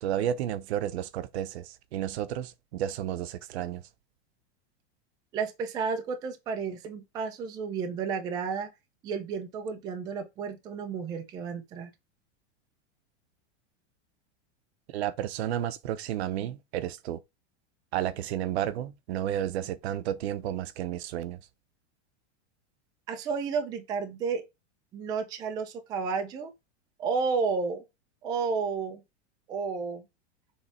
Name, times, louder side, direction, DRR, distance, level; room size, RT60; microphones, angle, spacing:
voice 1, 0.0-3.8 14.9-17.2 17.9-21.4, right 11 dB, 65° right, 0.8 m, -32 dB
voice 2, 5.3-8.7 9.0-11.9 23.1-24.4 24.9-26.5 27.0-27.8 28.2-29.0 29.5-30.0, right 5 dB, 10° right, 0.4 m, -32 dB
7.2 x 3.3 x 4.2 m
supercardioid pair, 170°, 34 cm